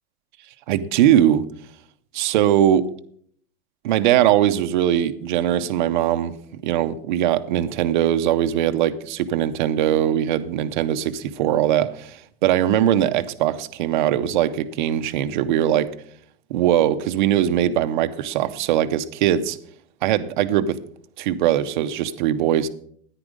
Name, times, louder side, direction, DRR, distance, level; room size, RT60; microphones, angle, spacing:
voice 1, 0.7-1.4 2.1-2.9 3.8-6.3 6.6-15.9 16.5-19.6 20.0-20.8 21.2-22.7, right 11 dB, 45° right, 10 dB, 0.6 m, -20 dB
10.0 x 9.9 x 5.1 m, 0.62 s
supercardioid pair, 180°, 34 cm